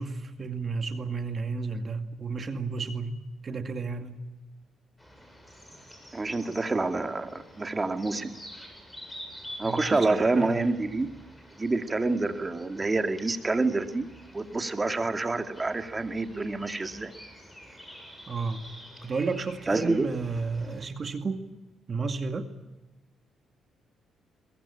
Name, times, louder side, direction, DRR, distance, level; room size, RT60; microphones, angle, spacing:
voice 1, 0.0-4.2 9.6-10.7 18.3-18.7 19.0-21.4 21.9-22.5, right 4 dB, 40° right, 7 dB, 2.3 m, -32 dB
sound 1, 5.0-20.9, equal, 10° left, 7.6 m, -48 dB
voice 2, 6.1-8.3 9.6-11.1 11.6-14.1 14.3-17.1 19.7-20.1, right 3 dB, 25° right, 7 dB, 2.4 m, -27 dB
22.5 x 22.0 x 8.7 m, 1.1 s
cardioid pair, 90°, 0 cm